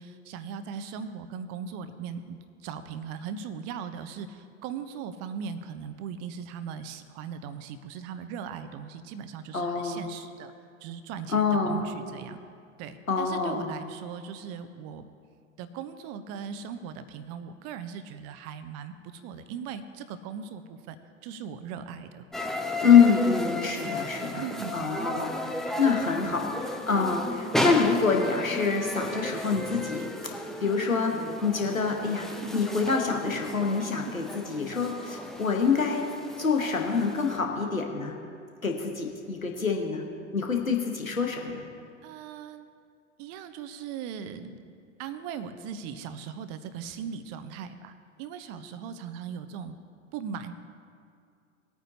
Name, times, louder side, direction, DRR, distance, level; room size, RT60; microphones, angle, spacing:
voice 1, 0.0-10.5 10.8-12.4 12.8-15.0 15.6-21.0 21.2-22.3 23.1-23.2 23.8-23.9 24.3-25.0 26.2-26.4 26.9-27.2 32.3-32.5 33.9-34.1 42.0-42.7 43.2-44.7 45.0-49.8 50.1-50.6, right 7 dB, 35° right, 11 dB, 0.8 m, -39 dB
voice 2, 9.5-10.0 11.3-11.8 13.1-13.7 22.8-24.4 24.7-36.1 36.4-38.2 38.6-40.1 40.3-41.6, left 5 dB, 85° left, 2 dB, 1.2 m, -26 dB
sound 1, 22.3-37.4, left 1 dB, ahead, 0.5 m, -34 dB
19.5 x 9.1 x 2.8 m, 2.3 s
figure-of-eight pair, 85°, 40 cm